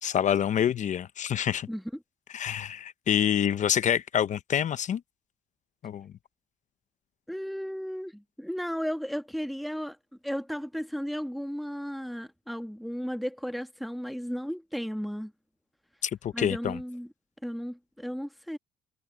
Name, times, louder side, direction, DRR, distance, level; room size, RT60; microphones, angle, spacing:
voice 1, 0.0-1.7 2.3-5.0 5.8-6.1 16.0-16.8, left 9 dB, 45° left, 0.8 m, -27 dB
voice 2, 7.3-10.0 10.2-15.3 16.3-17.1 17.4-18.6, equal, ahead, 1.3 m, -34 dB
cardioid pair, 110°, 17 cm